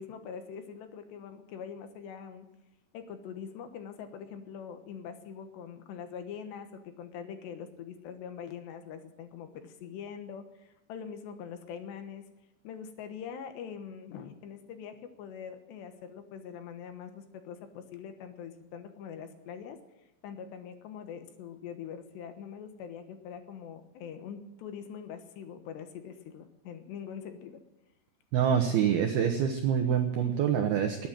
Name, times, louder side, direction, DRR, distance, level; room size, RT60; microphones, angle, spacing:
voice 1, 0.0-2.5 2.9-12.2 12.6-19.8 20.2-27.6 28.6-28.8, left 7 dB, 70° left, 8 dB, 3.0 m, -43 dB
voice 2, 28.3-31.1, right 8 dB, 75° right, 5 dB, 2.3 m, -26 dB
20.0 x 9.4 x 7.5 m, 0.95 s
omnidirectional pair, 5.9 m